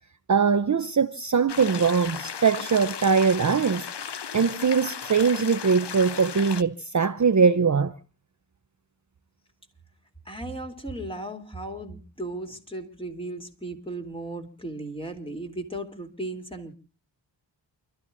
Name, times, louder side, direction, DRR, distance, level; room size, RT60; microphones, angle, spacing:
voice 1, 0.3-3.9 4.3-7.9, right 5 dB, 40° right, 0.8 m, -22 dB
sound 1, 1.5-6.6, left 7 dB, 60° left, 0.9 m, -36 dB
voice 2, 10.2-16.8, right 1 dB, 10° left, 3.3 m, -36 dB
29.0 x 13.0 x 2.6 m
cardioid pair, 55°, 46 cm